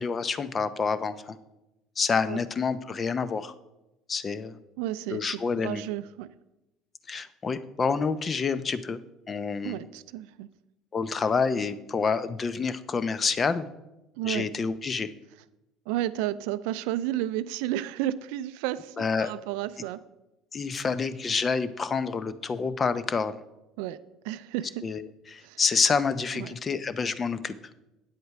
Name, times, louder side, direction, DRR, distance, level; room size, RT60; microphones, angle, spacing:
voice 1, 0.0-1.4 2.0-3.5 4.1-4.6 5.1-5.8 7.1-9.0 9.3-9.8 10.9-13.7 14.2-15.1 19.0-19.3 20.5-23.4 24.8-27.5, left 5 dB, 35° left, 14 dB, 0.7 m, -28 dB
voice 2, 4.8-6.3 9.6-10.5 14.2-14.5 15.9-20.0 23.8-24.9 25.4-25.6 26.3-26.6, right 13 dB, 70° right, 16 dB, 0.4 m, -32 dB
9.0 x 8.0 x 4.8 m, 0.96 s
hypercardioid pair, 65°, 0 cm